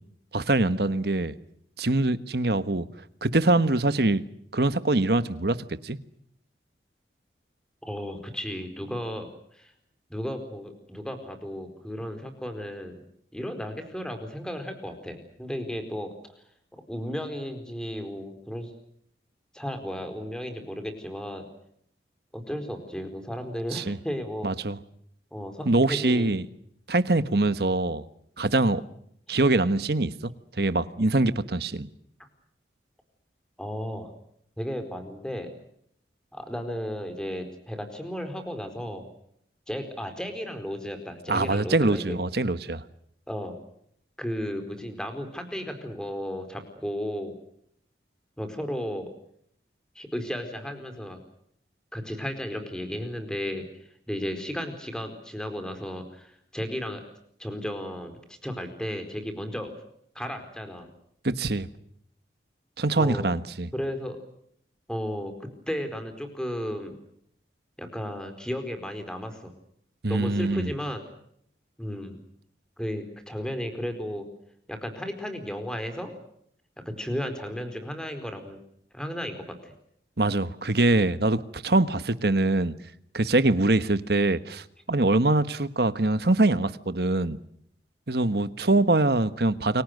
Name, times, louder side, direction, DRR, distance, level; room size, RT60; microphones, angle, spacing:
voice 1, 0.3-1.3 1.8-2.9 3.2-4.2 4.5-5.6 5.8-6.0 23.7-24.0 24.4-24.8 25.6-26.5 26.9-28.0 28.4-28.8 29.3-30.3 30.6-31.9 41.3-42.8 61.2-61.7 62.8-63.7 70.0-70.7 80.2-82.7 83.1-87.4 88.1-89.8, right 2 dB, 65° right, 1.4 m, -23 dB
voice 2, 7.8-9.3 9.5-9.7 10.1-13.0 13.3-16.1 16.7-18.7 19.5-21.5 22.3-24.5 25.3-26.3 33.6-34.1 34.6-35.5 36.3-39.1 39.7-42.2 43.3-43.6 44.2-47.4 48.4-49.1 49.9-51.2 51.9-53.6 54.1-57.0 57.4-59.8 60.1-60.9 63.0-63.3 63.7-64.2 64.9-67.0 67.8-69.5 70.1-71.0 71.8-72.2 72.8-74.3 74.7-76.1 76.8-78.6 78.9-79.7, equal, 5° left, 4.3 m, -34 dB
29.5 x 23.5 x 6.6 m
head